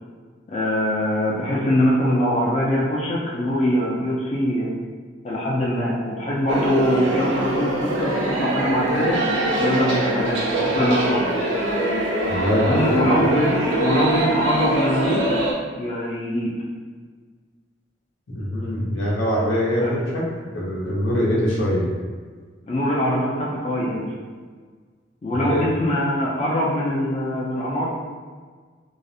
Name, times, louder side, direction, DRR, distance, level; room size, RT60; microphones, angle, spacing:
voice 1, 0.5-4.7 5.2-9.2 9.6-11.4 12.6-15.2 15.8-16.5 19.8-19.9 22.7-24.0 25.2-27.9, equal, 35° left, -6 dB, 0.3 m, -22 dB
sound 1, 6.5-15.5, right 1 dB, 90° right, 0.5 m, -23 dB
voice 2, 12.3-12.9 18.3-21.9 25.3-25.6, equal, 85° left, -5 dB, 0.7 m, -23 dB
2.4 x 2.0 x 2.6 m, 1.5 s
head